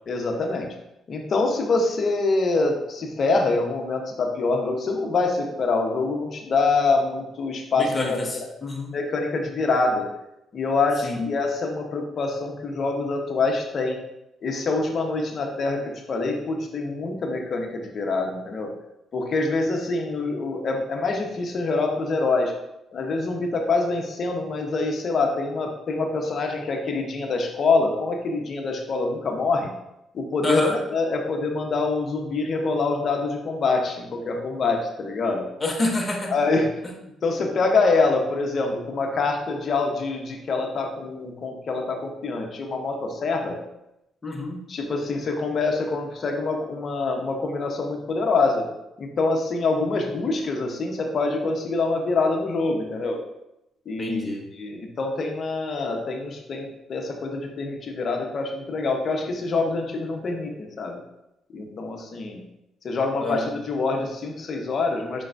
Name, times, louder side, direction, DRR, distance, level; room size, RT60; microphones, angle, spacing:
voice 1, 0.1-0.7 1.1-8.2 8.9-10.1 10.5-14.0 14.4-18.7 19.1-22.5 22.9-29.7 30.1-35.5 36.3-36.7 37.2-43.6 44.7-48.7 49.0-53.2 53.9-54.2 54.6-61.0 61.5-62.4 62.8-65.2, left 3 dB, 50° left, 2 dB, 0.8 m, -25 dB
voice 2, 7.8-8.9 11.0-11.3 30.4-30.8 35.6-36.4 44.2-44.7 54.0-54.5 63.2-63.5, left 2 dB, 25° left, 1 dB, 0.9 m, -27 dB
5.3 x 3.7 x 2.6 m, 0.87 s
cardioid pair, 90°, 0 cm